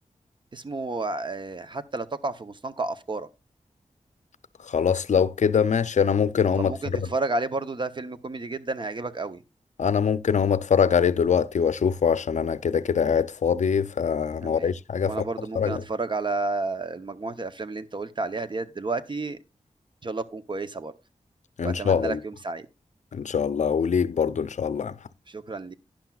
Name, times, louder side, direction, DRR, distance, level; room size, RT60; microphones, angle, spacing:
voice 1, 0.5-3.3 6.6-9.4 14.4-14.8 15.0-19.4 20.0-20.9 21.6-22.7 25.3-25.7, right 3 dB, 40° right, 0.7 m, -31 dB
voice 2, 4.6-7.0 9.8-15.1 15.6-15.8 21.6-22.2 23.1-24.9, left 7 dB, 70° left, 0.5 m, -23 dB
11.5 x 10.0 x 2.3 m
wide cardioid pair, 120°, 13 cm